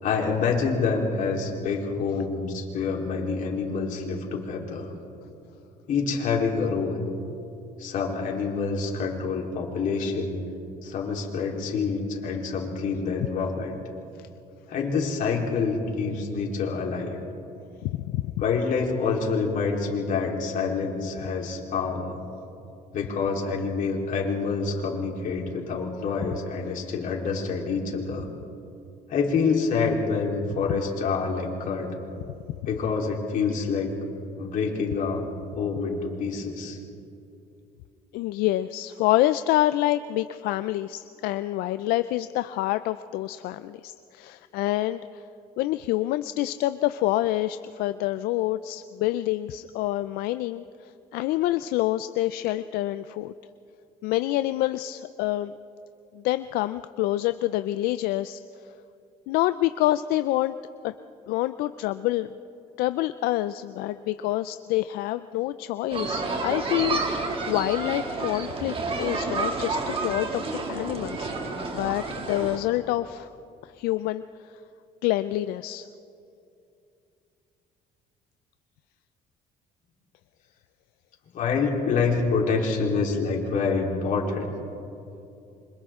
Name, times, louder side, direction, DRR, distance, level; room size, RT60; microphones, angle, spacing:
voice 1, 0.0-4.9 5.9-7.0 7.8-10.4 10.8-13.7 14.7-17.2 18.4-22.2 22.9-28.3 29.1-32.0 32.7-33.9 34.4-35.3 35.5-36.8 81.3-84.5, left 5 dB, 60° left, -1 dB, 3.8 m, -27 dB
voice 2, 38.1-45.2 45.6-50.6 51.1-53.3 54.0-55.6 56.1-58.4 59.3-60.5 60.8-60.9 61.3-62.3 62.8-71.3 71.7-73.3 73.6-74.2 75.0-75.9, left 15 dB, 85° left, 12 dB, 0.5 m, -27 dB
sound 1, 65.9-72.6, right 3 dB, 35° right, 2.4 m, -30 dB
27.5 x 25.5 x 3.7 m, 2.7 s
cardioid pair, 120°, 15 cm